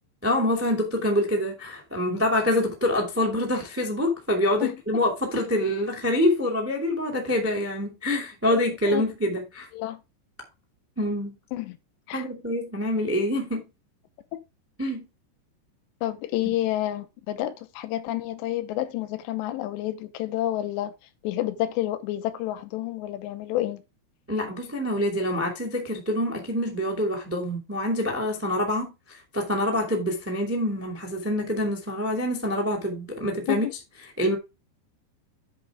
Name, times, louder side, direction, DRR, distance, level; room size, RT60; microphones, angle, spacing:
voice 1, 0.2-9.7 11.0-11.3 12.1-13.6 14.8-15.0 24.3-28.9 29.3-33.6 34.2-34.3, left 1 dB, 15° right, 0.4 m, -26 dB
voice 2, 16.0-20.9 21.2-23.8 33.5-33.7, left 14 dB, 80° left, 2.9 m, -29 dB
10.5 x 4.3 x 4.8 m
omnidirectional pair, 5.3 m